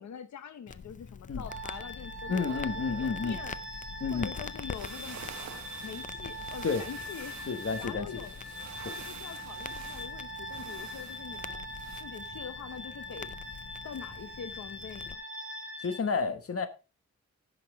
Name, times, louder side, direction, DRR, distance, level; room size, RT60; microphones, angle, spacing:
voice 1, 0.0-3.6 4.1-5.2 5.8-8.4 8.9-11.6 12.0-13.3 13.8-15.2, left 7 dB, 70° left, 0.8 m, -44 dB
Crackle, 0.7-15.1, left 5 dB, 30° left, 0.4 m, -45 dB
sound 1, 1.5-16.0, equal, 45° right, 2.0 m, -42 dB
voice 2, 2.3-3.4 4.0-4.3 6.6-6.8 7.5-8.1 15.8-16.7, left 5 dB, 50° left, 1.1 m, -30 dB
sound 2, 4.5-12.0, right 7 dB, 70° right, 1.1 m, -48 dB
15.0 x 5.8 x 3.4 m
wide cardioid pair, 175°, 29 cm